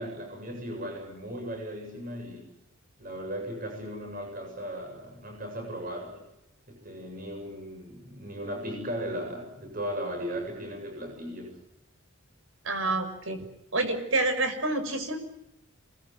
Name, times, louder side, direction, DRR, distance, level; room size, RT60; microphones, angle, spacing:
voice 1, 0.0-2.5 3.0-6.2 6.7-11.6, equal, 40° right, 2 dB, 7.7 m, -37 dB
voice 2, 12.6-13.4 13.7-15.2, right 2 dB, 70° right, 7 dB, 6.0 m, -28 dB
27.5 x 20.5 x 9.4 m, 0.88 s
head